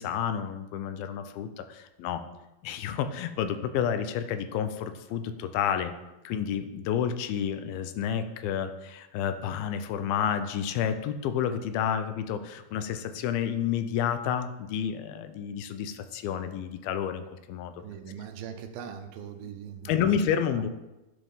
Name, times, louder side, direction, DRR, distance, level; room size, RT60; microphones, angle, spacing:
voice 1, 0.0-2.2 2.6-5.9 6.2-17.7 19.8-20.8, left 8 dB, 85° left, 10 dB, 2.5 m, -30 dB
voice 2, 17.8-20.2 20.5-20.6, right 8 dB, 80° right, 7 dB, 2.6 m, -41 dB
11.0 x 5.1 x 5.5 m, 1.0 s
omnidirectional pair, 4.2 m